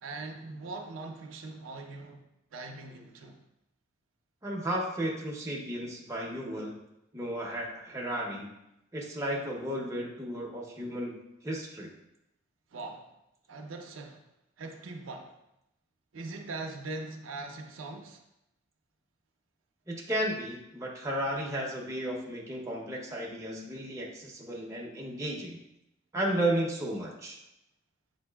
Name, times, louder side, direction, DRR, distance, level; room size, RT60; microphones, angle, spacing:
voice 1, 0.0-2.2 2.5-3.4 12.7-13.1 13.5-14.2 14.6-15.3 16.1-18.2, right 3 dB, 70° right, 3 dB, 0.5 m, -41 dB
voice 2, 4.4-6.7 7.1-8.5 8.9-11.1 11.4-11.9 19.9-25.6 26.1-27.4, right 1 dB, 15° right, -3 dB, 0.6 m, -33 dB
7.5 x 2.6 x 2.2 m, 0.86 s
head